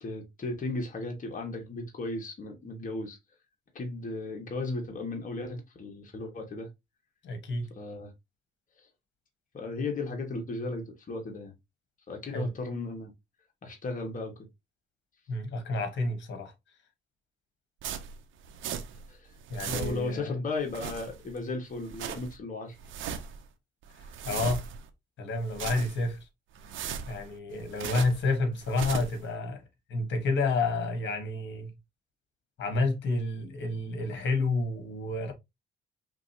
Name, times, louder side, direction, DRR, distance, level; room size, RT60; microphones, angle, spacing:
voice 1, 0.0-3.2 3.7-6.7 7.8-8.1 9.5-11.5 12.1-13.1 13.6-14.3 19.1-19.3 19.7-22.8, left 2 dB, 40° left, 1.6 m, -35 dB
voice 2, 7.2-7.7 12.3-12.5 15.3-16.5 19.5-20.3 24.2-24.6 25.2-26.2 27.1-29.6 29.9-31.7 32.6-35.3, left 3 dB, 65° left, 1.5 m, -30 dB
sound 1, 17.8-19.1 19.4-20.2 20.6-21.4 21.7-22.4 22.8-23.4 23.8-24.9 25.3-26.2 26.6-28.3 28.6-29.2, right 7 dB, 75° right, 0.8 m, -38 dB
5.1 x 3.2 x 2.8 m
cardioid pair, 90°, 20 cm